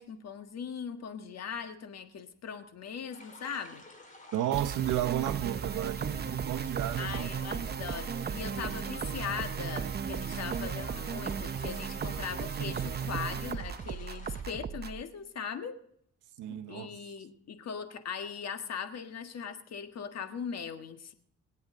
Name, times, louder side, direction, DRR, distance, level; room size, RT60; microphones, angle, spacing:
voice 1, 0.0-3.8 7.0-15.8 16.5-21.1, left 7 dB, 60° left, 1.6 m, -40 dB
sound 1, 3.1-14.4, left 2 dB, 25° left, 4.5 m, -51 dB
voice 2, 4.3-7.3 16.4-16.9, right 13 dB, 80° right, 0.8 m, -33 dB
sound 2, 4.5-15.0, right 7 dB, 35° right, 0.7 m, -35 dB
26.0 x 8.7 x 3.8 m
cardioid pair, 90°, 30 cm